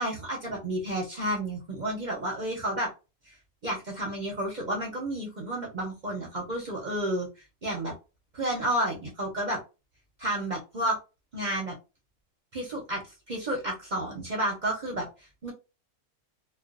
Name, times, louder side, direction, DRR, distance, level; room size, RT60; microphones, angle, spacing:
voice 1, 0.0-2.9 3.6-7.3 7.6-7.9 8.3-9.6 10.2-11.0 11.3-11.7 12.5-15.1 15.4-15.5, right 1 dB, 40° right, -2 dB, 0.7 m, -31 dB
2.4 x 2.3 x 2.4 m, 0.28 s
omnidirectional pair, 1.5 m